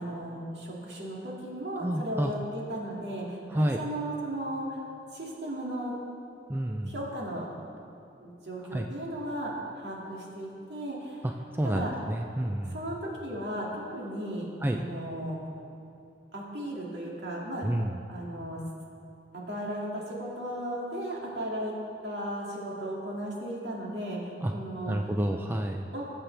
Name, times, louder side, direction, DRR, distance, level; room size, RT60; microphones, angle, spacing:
voice 1, 0.0-4.8 5.1-5.9 6.8-7.5 8.2-11.3 11.6-12.0 12.7-14.5 14.7-15.4 16.3-17.7 18.1-18.6 19.5-21.7 22.0-25.2 25.9-26.0, right 1 dB, 65° right, -3 dB, 2.4 m, -36 dB
voice 2, 1.8-2.3 3.5-3.8 6.5-6.9 8.7-8.9 11.6-12.7 14.6-14.8 17.6-18.0 24.4-24.5 24.9-25.9, right 1 dB, 10° right, 3 dB, 0.4 m, -29 dB
21.0 x 7.4 x 3.4 m, 2.6 s
head